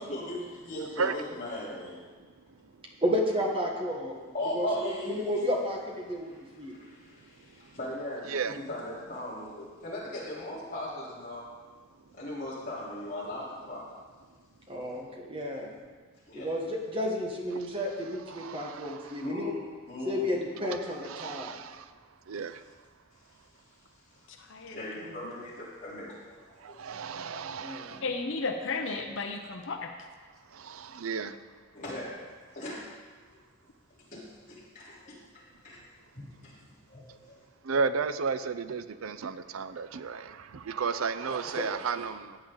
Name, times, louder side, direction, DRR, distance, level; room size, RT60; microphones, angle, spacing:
voice 1, 0.0-2.0 4.3-5.5 6.7-11.5 12.1-13.9 16.3-16.5 19.2-19.6 19.9-20.3 24.7-27.2 31.7-32.2 32.5-32.9 34.1-35.2 35.6-35.8 36.1-36.5 36.9-37.4, left 1 dB, 40° left, -8 dB, 3.8 m, -38 dB
voice 2, 0.8-1.2 8.3-8.6 17.6-17.7 18.3-19.2 21.1-21.9 22.3-22.6 26.6-28.0 30.5-31.4 37.6-42.4, right 5 dB, 90° right, 12 dB, 0.5 m, -33 dB
voice 3, 3.0-4.1 4.5-4.7 5.1-6.7 14.7-15.7 16.3-19.5 20.0-21.5 27.6-28.0, equal, 25° right, -1 dB, 1.4 m, -32 dB
voice 4, 24.3-24.8 27.3-27.4 28.0-29.9, left 3 dB, 65° left, 4 dB, 0.8 m, -34 dB
14.5 x 8.7 x 3.9 m, 1.4 s
head